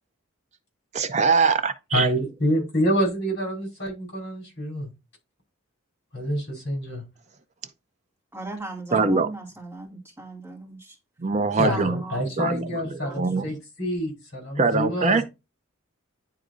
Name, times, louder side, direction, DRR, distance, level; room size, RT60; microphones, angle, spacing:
voice 1, 0.9-2.1 8.9-9.3 11.2-12.0 12.4-12.7 13.2-13.5 14.6-15.2, right 4 dB, 35° right, 0.5 m, -22 dB
voice 2, 1.9-4.9 6.1-7.0 11.5-15.2, equal, 55° left, 4.3 m, -27 dB
voice 3, 8.3-10.9 11.7-13.5, right 2 dB, 10° right, 2.4 m, -38 dB
10.0 x 3.9 x 2.6 m
head